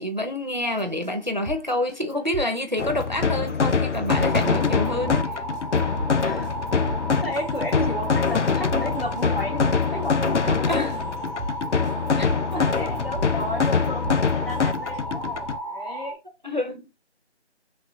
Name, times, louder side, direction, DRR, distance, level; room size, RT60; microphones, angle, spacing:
voice 1, 0.0-5.4 10.7-11.0 12.2-12.7 16.4-16.9, left 1 dB, 40° right, 0.6 m, -28 dB
Keyboard (musical), 0.7-15.0, equal, 90° right, 0.9 m, -38 dB
sound 1, 2.8-15.6, left 5 dB, 85° left, 0.6 m, -24 dB
sound 2, 4.1-16.1, right 1 dB, 40° left, 0.8 m, -34 dB
voice 2, 7.2-10.9 12.6-16.2, left 1 dB, 55° left, 1.4 m, -33 dB
3.2 x 3.0 x 2.5 m
figure-of-eight pair, 180°, 35 cm